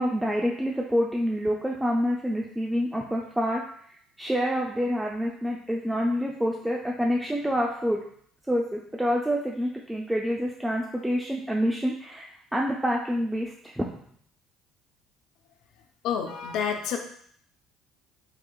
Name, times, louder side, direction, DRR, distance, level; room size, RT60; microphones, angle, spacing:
voice 1, 0.0-3.6 4.2-8.0 8.5-13.9, equal, 10° right, -2 dB, 0.5 m, -27 dB
voice 2, 16.0-17.0, left 7 dB, 65° left, 4 dB, 0.5 m, -28 dB
4.7 x 2.9 x 2.3 m, 0.63 s
hypercardioid pair, 55°, 0 cm